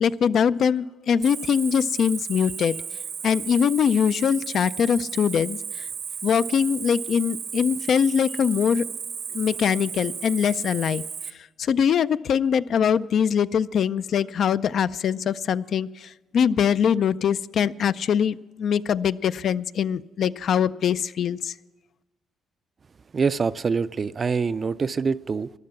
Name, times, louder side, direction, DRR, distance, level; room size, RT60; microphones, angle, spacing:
voice 1, 0.0-2.8 3.2-5.6 6.2-8.9 9.3-11.0 11.6-21.5, left 7 dB, 65° left, 14 dB, 0.3 m, -22 dB
Cricket, 1.2-11.3, right 7 dB, 60° right, 0.8 m, -34 dB
voice 2, 23.1-25.5, right 5 dB, 40° right, 15 dB, 0.4 m, -25 dB
15.0 x 11.0 x 5.9 m, 1.2 s
cardioid pair, 90°, 0 cm